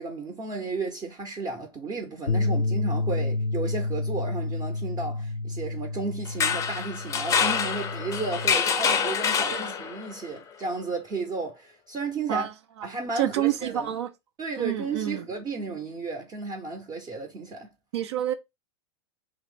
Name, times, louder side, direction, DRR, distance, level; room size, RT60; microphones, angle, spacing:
voice 1, 0.0-12.5 12.8-13.9 14.4-17.7, right 3 dB, 25° right, 0.6 m, -33 dB
Bass guitar, 2.3-8.5, left 2 dB, 90° left, 0.4 m, -30 dB
sound 1, 6.3-10.1, left 6 dB, 20° left, 0.4 m, -26 dB
voice 2, 13.2-14.1 14.6-15.3 17.9-18.3, right 12 dB, 70° right, 0.4 m, -28 dB
3.0 x 2.0 x 3.3 m
hypercardioid pair, 95°, 14 cm